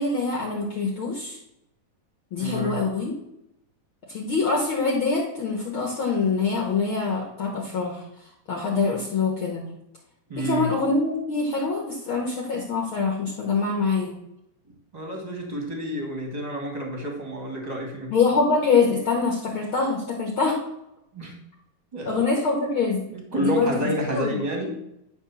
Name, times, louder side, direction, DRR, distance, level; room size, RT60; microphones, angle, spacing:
voice 1, 0.0-1.4 2.3-3.1 4.1-8.0 8.5-9.7 10.4-14.2 18.1-20.6 22.1-23.0 23.3-24.3, left 4 dB, 60° left, -1 dB, 1.4 m, -24 dB
voice 2, 2.4-2.7 10.3-10.7 14.9-18.1 21.1-21.3 21.9-22.2 23.1-24.8, equal, 20° right, 1 dB, 1.3 m, -29 dB
10.5 x 3.6 x 7.0 m, 0.81 s
omnidirectional pair, 4.1 m